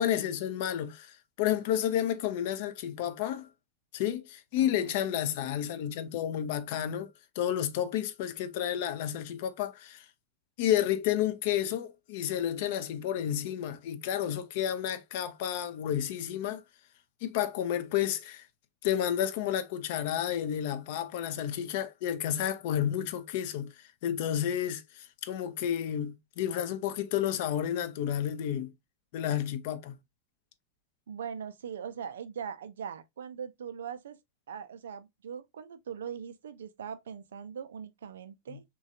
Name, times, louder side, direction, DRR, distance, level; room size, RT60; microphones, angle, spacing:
voice 1, 0.0-3.5 3.9-7.1 7.4-10.1 10.6-16.6 17.2-18.4 18.8-28.7 29.1-29.9 38.5-38.6, left 10 dB, 50° left, 0.4 m, -31 dB
voice 2, 4.6-5.2 31.1-34.2 34.5-38.6, right 7 dB, 65° right, 0.4 m, -41 dB
3.1 x 2.2 x 2.7 m
figure-of-eight pair, 90°, 0 cm